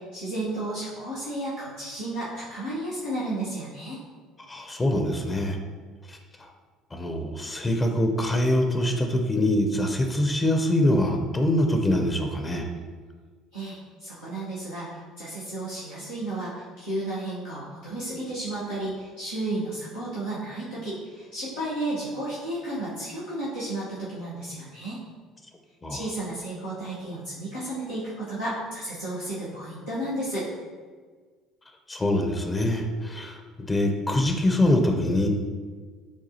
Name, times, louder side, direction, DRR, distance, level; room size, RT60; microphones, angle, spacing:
voice 1, 0.0-4.0 13.5-25.0 25.9-30.5, right 1 dB, 90° left, -14 dB, 0.9 m, -33 dB
voice 2, 4.4-5.6 6.1-6.5 6.9-12.7 25.8-26.1 31.9-35.3, left 1 dB, 20° left, 4 dB, 0.5 m, -24 dB
7.0 x 2.3 x 2.7 m, 1.5 s
figure-of-eight pair, 60°, 0 cm